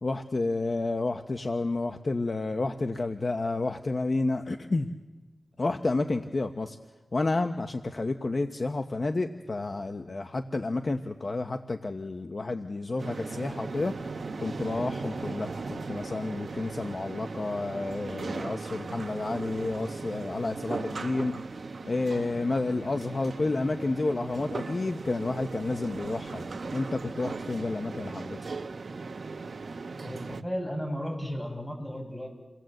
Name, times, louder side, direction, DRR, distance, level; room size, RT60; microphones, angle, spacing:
voice 1, 0.0-4.9 5.6-6.8 7.1-21.3 21.8-28.4, left 2 dB, 45° left, 6 dB, 1.0 m, -30 dB
sound 1, 13.0-30.4, right 4 dB, 65° right, 1.0 m, -38 dB
voice 2, 30.0-32.3, equal, 15° left, 2 dB, 7.2 m, -34 dB
29.0 x 20.0 x 7.8 m, 1.2 s
wide cardioid pair, 75°, 0 cm